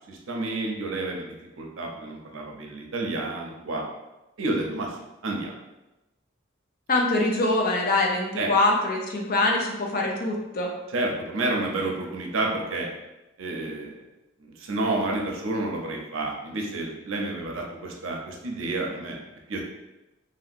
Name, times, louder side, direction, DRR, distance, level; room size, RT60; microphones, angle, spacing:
voice 1, 0.1-3.8 4.4-5.0 5.2-5.5 8.4-8.5 10.9-12.9 13.4-14.0 14.4-19.2 19.5-19.6, right 2 dB, 70° right, 0 dB, 0.6 m, -30 dB
voice 2, 6.9-10.7, left 2 dB, 45° left, 0 dB, 0.5 m, -24 dB
3.0 x 2.8 x 2.5 m, 1.0 s
head